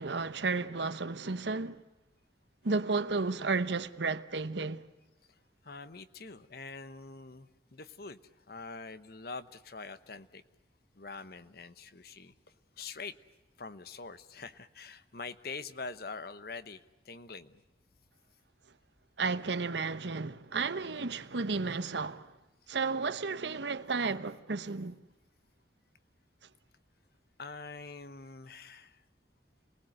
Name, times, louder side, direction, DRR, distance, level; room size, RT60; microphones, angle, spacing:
voice 1, 0.0-1.8 2.6-4.9 19.2-22.3 22.7-25.0, right 4 dB, 80° right, 1.0 m, -33 dB
voice 2, 5.3-10.4 10.9-13.2 13.6-17.6 27.4-29.0, left 4 dB, 60° left, 1.0 m, -45 dB
28.0 x 19.5 x 7.9 m
head